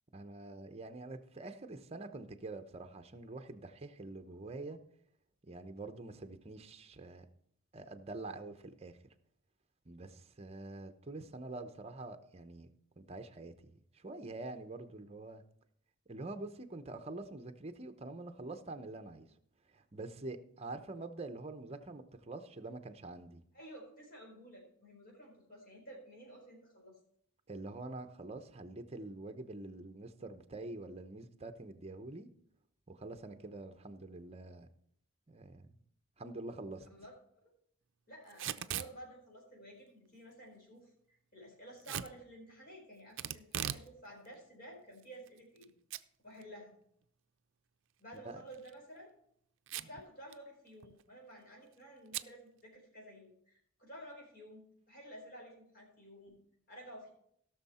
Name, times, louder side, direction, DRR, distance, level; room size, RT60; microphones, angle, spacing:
voice 1, 0.1-4.8 5.5-7.2 7.7-9.0 9.8-12.7 13.0-15.4 16.1-19.3 19.7-23.4 27.5-32.3 32.9-34.7 35.3-35.8 36.2-36.9 48.2-48.4 49.8-49.9, right 2 dB, 30° right, 8 dB, 0.8 m, -46 dB
voice 2, 23.5-27.0 36.9-37.1 37.4-37.5 38.1-40.9 41.3-45.7 46.2-46.7 48.0-49.1 49.7-56.4 56.7-57.1, equal, 45° left, -1 dB, 4.4 m, -52 dB
Packing tape duct tape / Tearing, 38.3-38.9 41.8-42.1 43.2-43.9 44.2-44.3 45.0-45.6 45.9-46.0 46.4-46.5 48.5-48.7 49.7-50.0 50.3-50.4 50.7-51.0 52.1-52.3, right 11 dB, 60° right, 0.5 m, -39 dB
17.0 x 6.4 x 4.3 m, 0.68 s
head